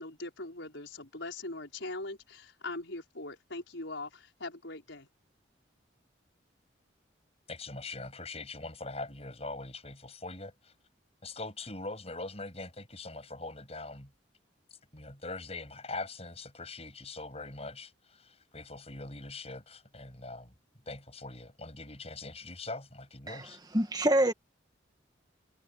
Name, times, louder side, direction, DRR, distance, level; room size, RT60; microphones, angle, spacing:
voice 1, 0.0-5.1, left 2 dB, 75° left, 4.9 m, -41 dB
voice 2, 7.5-10.7 11.2-14.1 14.9-20.5 20.9-23.6, left 2 dB, 30° left, 7.6 m, -42 dB
voice 3, 23.7-24.3, right 1 dB, 20° right, 2.1 m, -25 dB
head